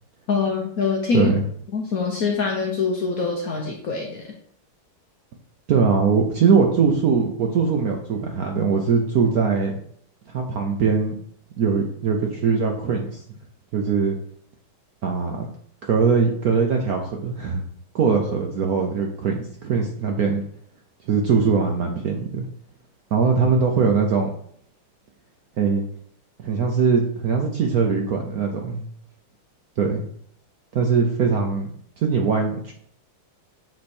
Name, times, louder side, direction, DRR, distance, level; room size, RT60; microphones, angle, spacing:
voice 1, 0.3-1.3 1.7-4.3, left 4 dB, 65° left, 1 dB, 0.9 m, -24 dB
voice 2, 1.1-1.4 5.7-9.8 10.3-11.1 11.6-13.2 13.7-14.2 15.0-15.5 15.9-17.6 17.9-20.4 21.1-22.5 23.1-24.3 25.6-25.8 26.4-28.9 29.8-30.0 30.7-31.7 32.0-32.7, right 5 dB, 65° right, 2 dB, 0.9 m, -21 dB
7.6 x 3.2 x 4.3 m, 0.64 s
omnidirectional pair, 2.3 m